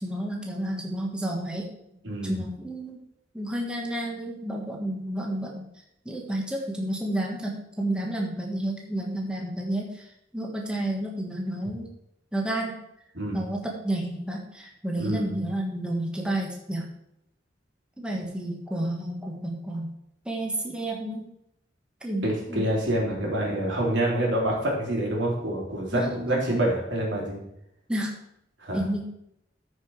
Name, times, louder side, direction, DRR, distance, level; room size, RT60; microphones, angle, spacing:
voice 1, 0.0-1.7 2.2-3.0 3.3-5.6 6.0-10.1 10.3-11.9 12.3-12.7 13.3-16.8 18.0-19.9 20.2-21.2 22.0-22.6 25.9-26.6 27.9-28.1 28.7-29.0, right 1 dB, 5° right, -1 dB, 1.4 m, -31 dB
voice 2, 2.0-2.4 13.1-13.4 15.0-15.3 22.2-27.4 28.6-28.8, right 1 dB, 80° right, -3 dB, 3.6 m, -27 dB
14.5 x 5.3 x 4.8 m, 0.79 s
head